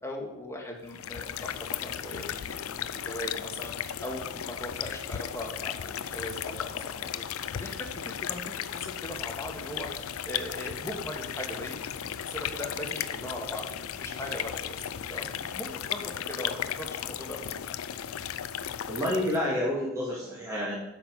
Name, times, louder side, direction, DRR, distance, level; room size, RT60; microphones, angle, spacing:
voice 1, 0.0-14.8 15.1-17.4, left 1 dB, 15° left, 0 dB, 1.7 m, -40 dB
sound 1, 0.9-19.5, left 9 dB, 80° left, 0.5 m, -35 dB
voice 2, 18.9-20.8, left 1 dB, 15° right, -6 dB, 2.1 m, -29 dB
8.4 x 5.7 x 7.9 m, 0.90 s
head